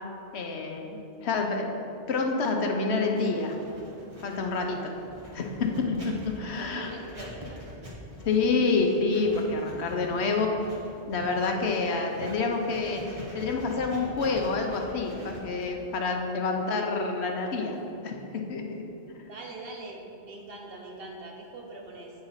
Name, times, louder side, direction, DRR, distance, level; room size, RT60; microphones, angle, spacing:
voice 1, 0.3-1.7 2.1-3.6 4.2-4.9 5.3-6.9 8.2-10.5 11.1-17.8 18.0-18.8, left 4 dB, 75° left, 2 dB, 1.1 m, -28 dB
Writing, 3.1-17.9, equal, 30° right, 1.4 m, -45 dB
voice 2, 6.5-7.7 19.2-22.1, right 2 dB, 60° right, 0 dB, 1.3 m, -42 dB
8.8 x 4.3 x 5.6 m, 2.9 s
omnidirectional pair, 1.1 m